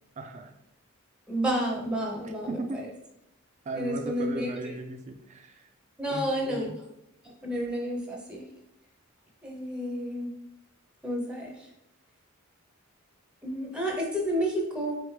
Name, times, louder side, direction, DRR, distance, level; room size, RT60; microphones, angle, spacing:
voice 1, 0.2-0.6 2.2-2.9 3.6-5.7 6.1-6.8, right 2 dB, 35° right, 5 dB, 0.3 m, -37 dB
voice 2, 1.3-2.5 3.8-4.7 6.0-6.7 7.4-8.4 9.4-10.3 11.0-11.7 13.4-15.0, equal, 5° right, -1 dB, 0.7 m, -30 dB
4.0 x 3.4 x 3.2 m, 0.82 s
head